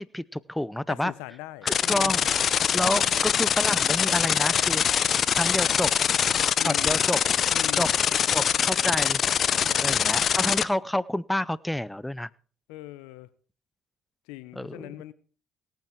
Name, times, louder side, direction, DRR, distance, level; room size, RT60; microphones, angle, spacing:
voice 1, 0.0-1.1 1.6-4.8 5.4-5.9 6.6-7.2 7.8-7.9 8.3-9.2 9.8-12.3 14.5-14.9, left 1 dB, 5° left, 21 dB, 0.6 m, -29 dB
voice 2, 0.9-2.3 2.8-3.1 6.6-7.1 7.5-8.0 9.5-9.9 12.7-13.3 14.3-15.1, left 17 dB, 90° left, 18 dB, 0.7 m, -41 dB
sound 1, 1.7-10.6, left 8 dB, 55° left, 0.6 m, -23 dB
18.0 x 9.1 x 4.5 m, 0.42 s
supercardioid pair, 75°, 0 cm